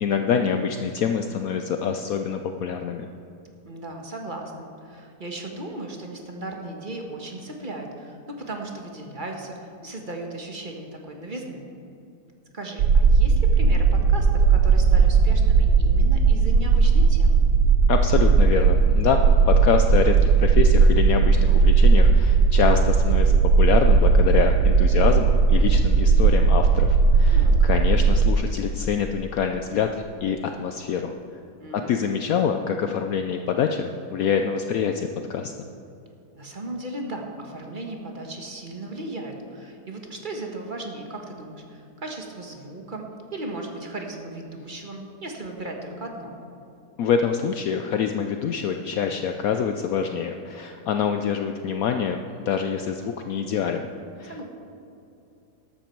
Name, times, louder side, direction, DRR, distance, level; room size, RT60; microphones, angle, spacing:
voice 1, 0.0-3.1 17.9-31.1 31.7-35.7 47.0-53.9 54.2-54.3, left 7 dB, 70° left, 6 dB, 1.0 m, -25 dB
voice 2, 3.6-11.7 12.5-17.4 27.3-27.7 31.6-32.1 36.3-46.3 54.3-54.4, right 2 dB, 30° right, 2 dB, 1.4 m, -36 dB
sound 1, 12.8-28.3, right 5 dB, 75° right, 1.2 m, -17 dB
13.0 x 12.5 x 4.5 m, 2.7 s
omnidirectional pair, 1.7 m